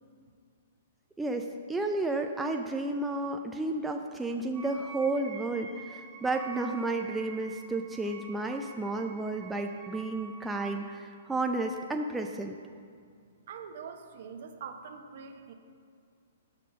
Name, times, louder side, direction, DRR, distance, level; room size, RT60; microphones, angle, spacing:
voice 1, 1.2-12.6, right 2 dB, 5° right, 3 dB, 0.4 m, -32 dB
Wind instrument woodwind instrument, 4.5-10.9, right 4 dB, 25° right, 0.9 m, -47 dB
voice 2, 13.5-15.5, right 6 dB, 60° right, 6 dB, 0.8 m, -44 dB
6.6 x 5.2 x 6.4 m, 2.2 s
hypercardioid pair, 140°, 0 cm